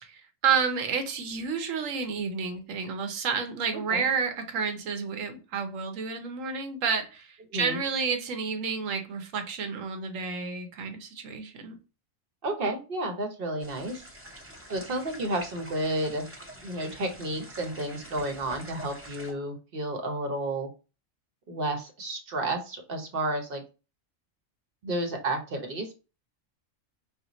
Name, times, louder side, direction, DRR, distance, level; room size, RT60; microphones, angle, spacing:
voice 1, 0.0-11.8, right 5 dB, 75° right, 6 dB, 1.1 m, -30 dB
voice 2, 3.7-4.0 7.5-7.8 12.4-14.0 14.7-16.3 16.6-20.7 21.5-23.6 24.8-25.9, right 1 dB, 50° right, 4 dB, 0.9 m, -31 dB
sound 1, 13.6-19.3, equal, 15° right, 0.5 m, -46 dB
4.2 x 2.2 x 4.0 m, 0.31 s
omnidirectional pair, 1.3 m